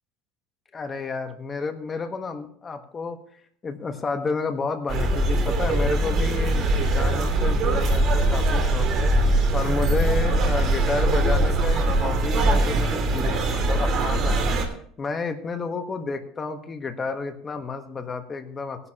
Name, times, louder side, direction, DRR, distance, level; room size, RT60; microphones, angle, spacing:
voice 1, 0.7-3.2 3.6-9.1 9.5-14.4 15.0-18.9, left 4 dB, 20° left, 6 dB, 1.3 m, -30 dB
sound 1, 4.9-14.7, right 2 dB, 40° right, 2.6 m, -22 dB
17.5 x 11.0 x 3.0 m, 0.63 s
cardioid pair, 145°, 0 cm